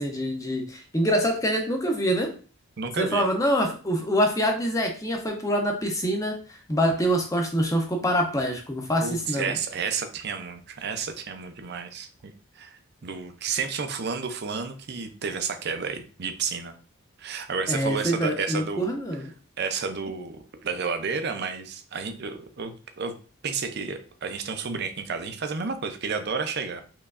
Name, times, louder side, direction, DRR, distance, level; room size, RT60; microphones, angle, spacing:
voice 1, 0.0-2.3 3.0-9.6 17.7-19.3, equal, 15° left, 2 dB, 0.6 m, -25 dB
voice 2, 2.8-3.3 9.0-16.7 17.2-19.0 19.6-23.1 23.4-26.8, right 5 dB, 50° right, 7 dB, 0.5 m, -31 dB
4.5 x 3.1 x 2.5 m, 0.38 s
head